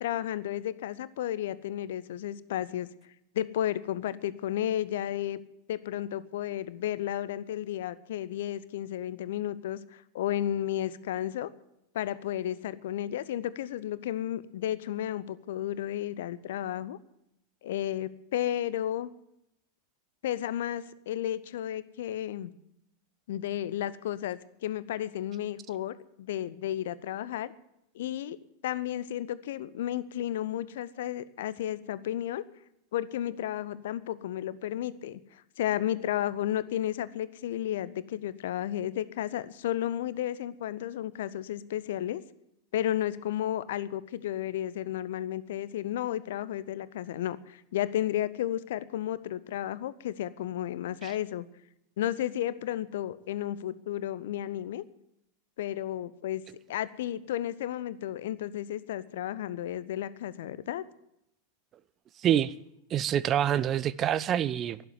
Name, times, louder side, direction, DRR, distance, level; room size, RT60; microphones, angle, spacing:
voice 1, 0.0-2.9 3.3-5.4 5.7-11.5 11.9-17.0 17.6-19.1 20.2-22.5 23.3-27.5 27.9-28.4 28.6-32.5 32.9-42.2 42.7-51.5 52.0-54.8 55.6-56.4 56.7-60.8, left 12 dB, 55° left, 0.7 m, -33 dB
voice 2, 62.2-62.5 62.9-64.8, right 10 dB, 30° right, 0.5 m, -26 dB
12.0 x 11.0 x 9.5 m
figure-of-eight pair, 90°, 0 cm